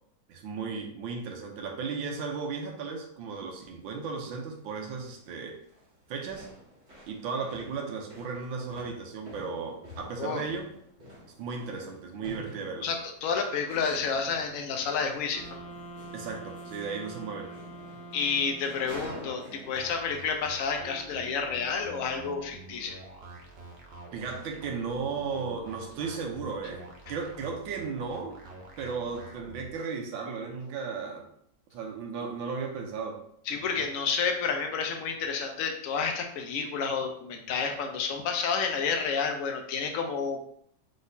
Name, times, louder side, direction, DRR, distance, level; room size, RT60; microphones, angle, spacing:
voice 1, 0.3-5.6 6.1-6.5 7.1-10.7 11.4-12.9 16.1-17.5 24.1-28.4 28.8-31.3 31.7-33.3, right 5 dB, 80° right, 2 dB, 1.5 m, -35 dB
sound 1, 3.5-3.7 4.5-4.6 4.9-5.2 5.5-20.0, equal, 40° right, 1.7 m, -48 dB
voice 2, 12.8-15.6 18.1-23.0 33.5-40.5, left 5 dB, 75° left, 3 dB, 0.7 m, -30 dB
sound 2, 15.3-19.2, right 1 dB, 55° left, 1.2 m, -45 dB
sound 3, 19.7-29.7, right 2 dB, 60° right, 0.6 m, -47 dB
4.1 x 3.9 x 2.6 m, 0.68 s
omnidirectional pair, 2.1 m